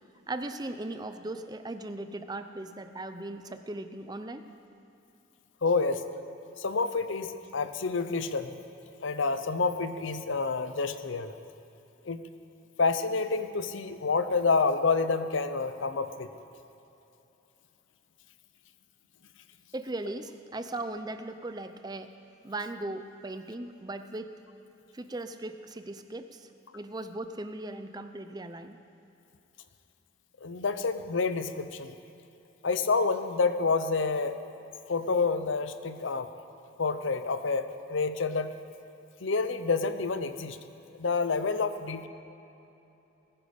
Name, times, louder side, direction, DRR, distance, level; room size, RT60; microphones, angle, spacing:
voice 1, 0.3-4.5 19.7-22.1 22.4-24.3 24.9-28.8, right 2 dB, 20° right, 9 dB, 0.5 m, -38 dB
voice 2, 5.6-6.0 6.6-8.6 9.0-11.3 12.0-12.2 12.8-16.3 30.4-31.9 32.6-34.4 34.9-36.3 36.8-38.5 39.2-40.6 40.9-42.1, left 4 dB, 80° left, 10 dB, 0.7 m, -28 dB
19.5 x 10.0 x 5.3 m, 2.9 s
head